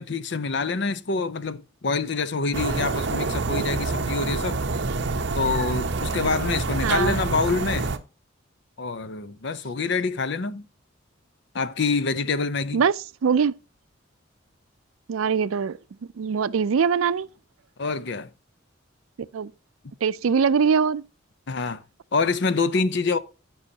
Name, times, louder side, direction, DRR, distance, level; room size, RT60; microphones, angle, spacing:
voice 1, 0.0-4.6 5.4-7.9 8.8-10.7 11.5-12.8 17.8-18.3 21.5-21.8 22.1-23.2, left 4 dB, 60° left, 0.6 m, -26 dB
sound 1, 2.5-8.0, right 3 dB, 55° right, 0.8 m, -27 dB
voice 2, 6.8-7.2 12.7-13.5 15.1-15.8 16.2-17.3 19.2-19.5 20.0-21.0, right 6 dB, 85° right, 0.4 m, -22 dB
15.0 x 5.5 x 2.8 m
head